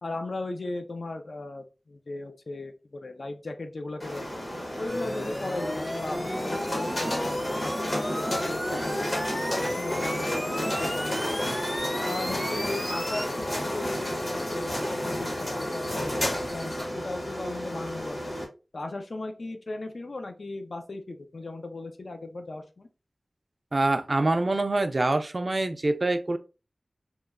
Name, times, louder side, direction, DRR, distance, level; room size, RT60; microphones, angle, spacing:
voice 1, 0.0-4.3 4.8-9.2 9.8-11.4 12.0-16.1 16.5-18.2 18.7-22.9, left 2 dB, 75° left, 0.4 m, -37 dB
sound 1, 4.0-18.4, equal, 50° left, 0.9 m, -31 dB
sound 2, 4.9-13.3, equal, 15° left, 0.5 m, -35 dB
voice 2, 23.7-26.4, right 2 dB, 50° right, 0.3 m, -25 dB
2.9 x 2.2 x 2.3 m
wide cardioid pair, 65°, 0 cm